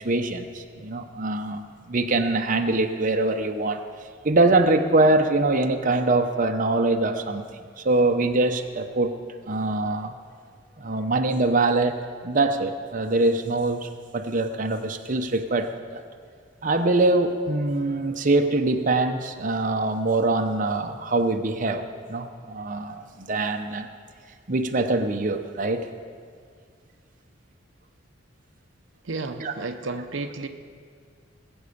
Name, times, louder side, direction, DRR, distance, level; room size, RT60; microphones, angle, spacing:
voice 1, 0.0-3.8 4.2-9.2 9.5-10.1 10.8-12.0 12.2-16.0 16.6-23.9 24.5-25.9 29.4-29.5, right 2 dB, 45° right, 5 dB, 0.8 m, -23 dB
voice 2, 29.0-30.5, right 3 dB, 70° right, 6 dB, 0.8 m, -32 dB
21.0 x 8.1 x 6.7 m, 2.1 s
head